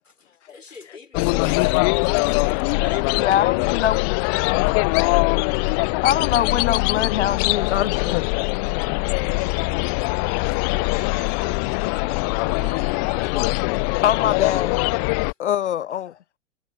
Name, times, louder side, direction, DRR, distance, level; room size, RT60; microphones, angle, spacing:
voice 1, 0.0-2.6 9.4-10.7 11.0-11.3, left 4 dB, 80° left, 4.9 m, -45 dB
sound 1, 1.1-15.3, left 37 dB, 20° left, 0.4 m, -22 dB
voice 2, 2.0-2.3 2.6-3.1 9.3-9.7 10.7-13.4, right 2 dB, 85° right, 3.6 m, -44 dB
voice 3, 3.1-4.0 4.3-8.2 11.9-12.1 13.2-14.8 15.4-16.2, left 10 dB, 65° left, 0.8 m, -25 dB
figure-of-eight pair, 105°, 38 cm